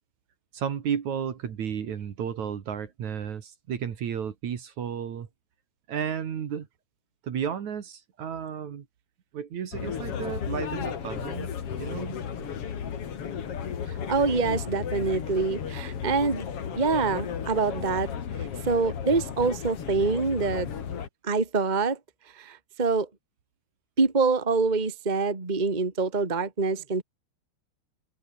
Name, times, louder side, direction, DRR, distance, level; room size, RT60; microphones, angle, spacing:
voice 1, 0.5-5.3 5.9-6.7 7.2-8.9 9.3-11.5 11.8-12.2, right 8 dB, 50° right, 2.6 m, -33 dB
sound 1, 9.7-21.1, left 7 dB, 50° left, 1.8 m, -34 dB
voice 2, 14.1-16.4 16.7-18.1 18.6-20.7 21.2-22.0 22.4-23.1 24.0-27.0, right 4 dB, 65° right, 0.4 m, -25 dB
omnidirectional pair, 5.6 m